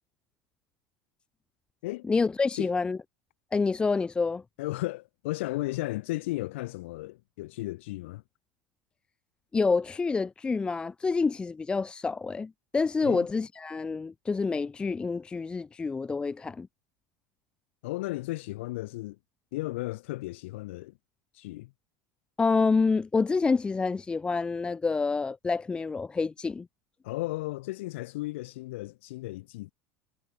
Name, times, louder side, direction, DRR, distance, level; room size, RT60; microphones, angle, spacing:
voice 1, 2.1-3.0 3.5-4.4 9.5-16.7 22.4-26.7, left 4 dB, 15° left, 0.4 m, -27 dB
voice 2, 4.6-8.2 13.0-13.3 17.8-19.2 19.5-20.9 21.3-21.7 27.0-29.7, left 19 dB, 80° left, 3.1 m, -34 dB
supercardioid pair, 115°, 6 cm